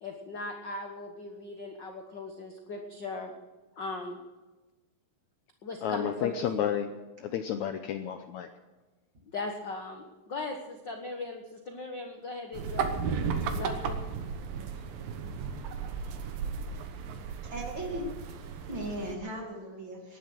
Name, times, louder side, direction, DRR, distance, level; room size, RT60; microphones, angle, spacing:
voice 1, 0.0-3.3 3.8-4.2 5.6-6.3 9.3-12.9 13.5-14.0, left 3 dB, 55° left, 3 dB, 1.2 m, -38 dB
voice 2, 5.8-6.9 7.2-8.5, left 9 dB, 70° left, 7 dB, 1.9 m, -31 dB
sound 1, 12.5-19.1, right 5 dB, 80° right, 3.0 m, -34 dB
voice 3, 17.5-18.1 18.7-20.2, equal, 35° right, 1 dB, 2.9 m, -37 dB
18.0 x 11.5 x 6.2 m, 1.2 s
omnidirectional pair, 4.0 m